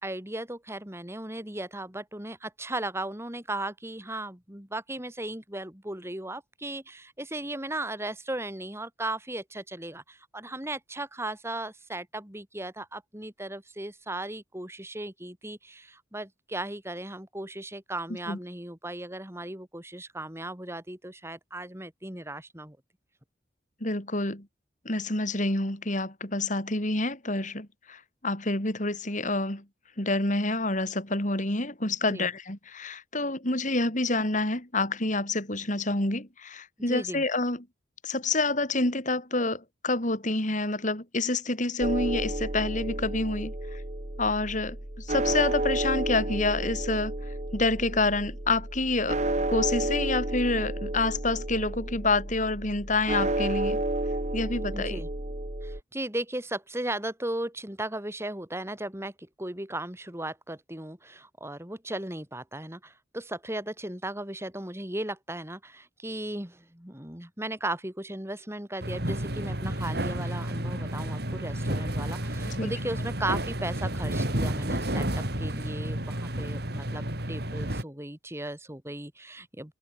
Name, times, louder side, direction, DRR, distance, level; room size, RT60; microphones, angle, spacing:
voice 1, 0.0-22.8 32.1-32.3 36.9-37.2 54.7-55.1 55.6-77.0 77.3-79.7, right 1 dB, 15° right, 3.6 m, -36 dB
voice 2, 23.8-24.5 24.9-29.6 30.0-37.7 38.0-43.8 44.2-47.1 47.5-49.2 49.5-53.8 54.3-55.0 72.5-72.7, left 2 dB, 45° left, 5.5 m, -28 dB
sound 1, 41.8-55.8, right 1 dB, 40° right, 2.3 m, -31 dB
sound 2, 68.8-77.8, right 1 dB, 60° right, 5.3 m, -31 dB
head